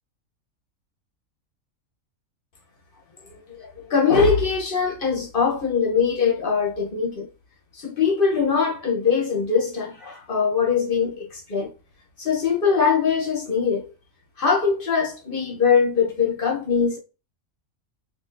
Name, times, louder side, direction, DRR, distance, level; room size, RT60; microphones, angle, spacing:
voice 1, 3.5-7.3 7.7-11.7 12.2-13.9 14.4-17.0, left 5 dB, 45° left, 1.0 m, -22 dB
4.1 x 2.8 x 2.6 m
omnidirectional pair, 1.4 m